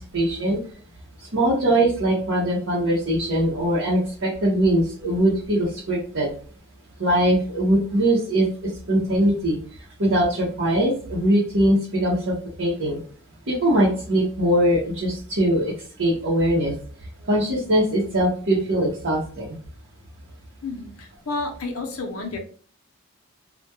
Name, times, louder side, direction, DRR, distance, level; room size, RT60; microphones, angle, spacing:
voice 1, 0.1-0.6 1.2-6.3 7.0-9.6 10.0-13.0 13.5-15.7 16.0-16.7 17.2-19.6, right 1 dB, 60° right, -6 dB, 0.7 m, -21 dB
voice 2, 20.6-22.4, left 3 dB, 80° left, 3 dB, 0.6 m, -31 dB
2.2 x 2.1 x 2.7 m, 0.43 s
head